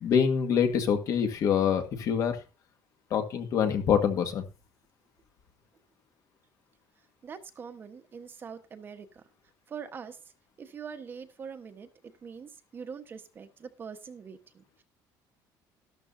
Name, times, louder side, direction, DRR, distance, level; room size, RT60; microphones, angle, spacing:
voice 1, 0.0-2.4 3.1-4.4, left 7 dB, 45° left, 7 dB, 1.9 m, -25 dB
voice 2, 7.2-9.2 9.7-10.2 10.6-11.9 12.2-14.8, right 6 dB, 30° right, 8 dB, 1.2 m, -43 dB
13.0 x 12.5 x 2.7 m, 0.29 s
cardioid pair, 165°, 8 cm